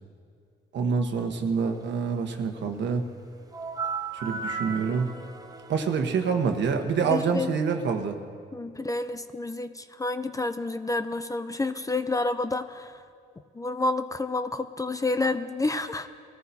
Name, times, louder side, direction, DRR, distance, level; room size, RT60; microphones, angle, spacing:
voice 1, 0.7-3.0 4.2-5.1 5.7-8.2, right 5 dB, 65° right, 5 dB, 1.2 m, -26 dB
sound 1, 3.5-7.1, right 4 dB, 20° right, 0.8 m, -36 dB
voice 2, 7.0-7.5 8.5-13.0 13.5-16.1, left 2 dB, 15° left, 10 dB, 0.5 m, -29 dB
21.0 x 14.0 x 2.8 m, 2.3 s
cardioid pair, 90°, 20 cm